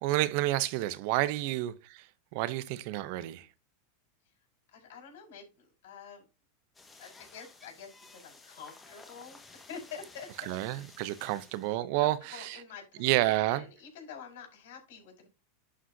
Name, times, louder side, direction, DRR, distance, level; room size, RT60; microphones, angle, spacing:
voice 1, 0.0-2.1 2.3-3.5 10.5-12.6 13.0-13.6, right 16 dB, 60° right, 0.6 m, -30 dB
voice 2, 4.7-6.2 7.0-10.5 11.2-11.4 12.0-15.3, left 6 dB, 70° left, 4.8 m, -48 dB
sound 1, 6.7-11.8, left 3 dB, 15° left, 1.6 m, -54 dB
11.5 x 4.9 x 2.7 m
hypercardioid pair, 110°, 0 cm